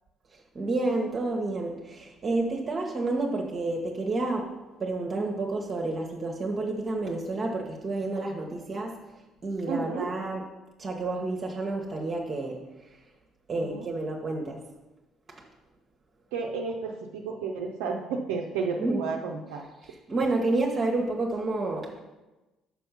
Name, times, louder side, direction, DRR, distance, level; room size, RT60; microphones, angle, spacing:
voice 1, 0.5-4.5 4.8-9.0 9.4-10.5 10.8-12.9 13.5-14.6 15.3-15.4 18.8-19.0 19.8-22.0, right 2 dB, 35° right, 0 dB, 1.0 m, -30 dB
voice 2, 9.7-10.1 13.6-13.9 16.3-19.6, right 4 dB, 65° right, 0 dB, 0.6 m, -32 dB
5.9 x 5.6 x 5.7 m, 1.1 s
figure-of-eight pair, 50°, 0 cm